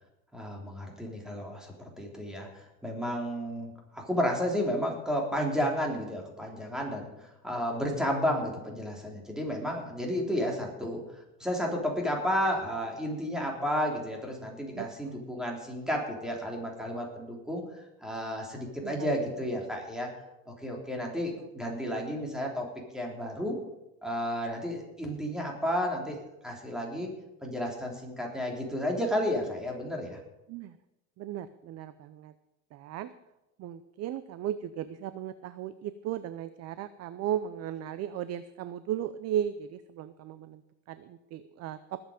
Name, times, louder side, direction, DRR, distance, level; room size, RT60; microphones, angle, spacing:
voice 1, 0.3-11.0 11.4-20.1 20.5-22.7 22.9-23.6 24.0-27.1 27.4-30.2, equal, ahead, -1 dB, 3.3 m, -32 dB
voice 2, 14.7-15.2 18.8-19.1 21.4-21.5 30.5-30.8 31.2-32.3 32.7-33.1 33.6-40.6 40.9-42.0, right 10 dB, 40° right, 13 dB, 0.6 m, -36 dB
19.5 x 8.1 x 5.2 m, 0.94 s
supercardioid pair, 130°, 39 cm